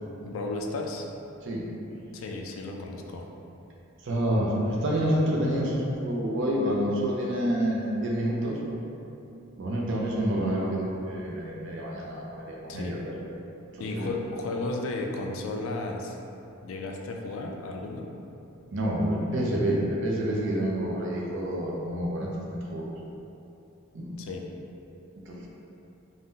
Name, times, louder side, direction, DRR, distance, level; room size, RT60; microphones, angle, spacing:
voice 1, 0.2-1.1 2.1-3.3 12.7-13.0 13.8-16.1 16.6-18.1 24.2-24.4, left 2 dB, 70° left, 1 dB, 0.3 m, -34 dB
voice 2, 4.0-8.6 9.6-13.0 13.7-14.2 18.7-22.9 23.9-24.2 25.3-25.5, right 1 dB, 60° right, -3 dB, 0.5 m, -28 dB
2.7 x 2.2 x 3.6 m, 2.8 s
head